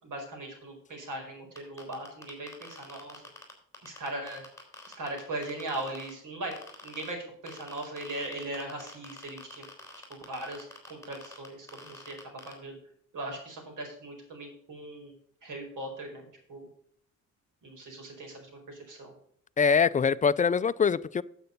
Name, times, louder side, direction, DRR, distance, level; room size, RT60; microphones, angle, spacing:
voice 1, 0.0-3.2 3.8-4.4 5.0-6.5 6.8-9.6 10.1-12.8 13.1-15.1 15.4-16.7 17.6-19.1, right 1 dB, 70° right, 4.7 m, -39 dB
sound 1, 1.6-6.1 6.5-7.1 7.5-12.5, left 3 dB, 10° left, 3.9 m, -46 dB
voice 2, 19.6-21.2, left 6 dB, 25° left, 0.4 m, -23 dB
9.2 x 7.9 x 5.3 m
cardioid pair, 105°, 33 cm